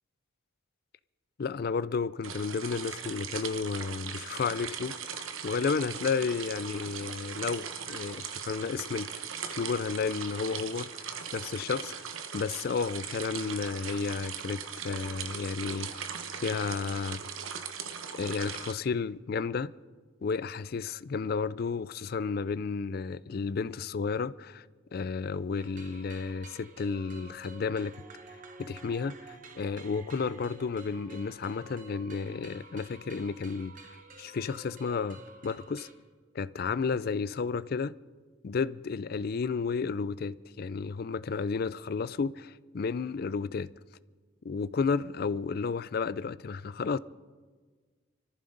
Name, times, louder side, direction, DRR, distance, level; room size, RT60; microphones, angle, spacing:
voice 1, 1.4-9.2 9.5-11.9 12.3-16.0 16.3-17.2 18.2-19.7 20.2-24.6 24.9-27.9 28.6-33.8 34.2-35.9 36.3-37.9 38.4-43.7 44.4-47.0, left 5 dB, 50° left, 0.3 m, -32 dB
sound 1, 2.2-18.7, right 7 dB, 80° right, 1.1 m, -39 dB
sound 2, 25.5-35.9, right 3 dB, 40° right, 1.2 m, -51 dB
24.0 x 14.5 x 3.9 m
head